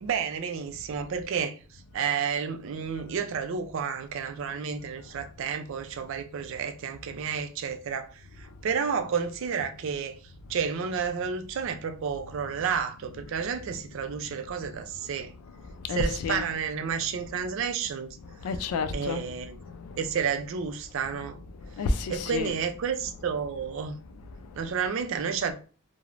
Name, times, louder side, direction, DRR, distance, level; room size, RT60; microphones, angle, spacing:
voice 1, 0.0-1.6 1.9-10.1 10.5-15.3 15.9-18.2 18.9-19.6 20.0-21.4 22.1-24.0 24.5-25.5, right 6 dB, 60° right, 0.3 m, -31 dB
voice 2, 5.0-5.3 7.1-7.2 8.4-8.8 10.4-10.6 12.4-12.5 13.0-15.1 15.4-17.7 18.1-20.3 20.9-22.6 22.9-24.7, left 4 dB, 85° left, 0.3 m, -36 dB
3.1 x 2.0 x 2.4 m
head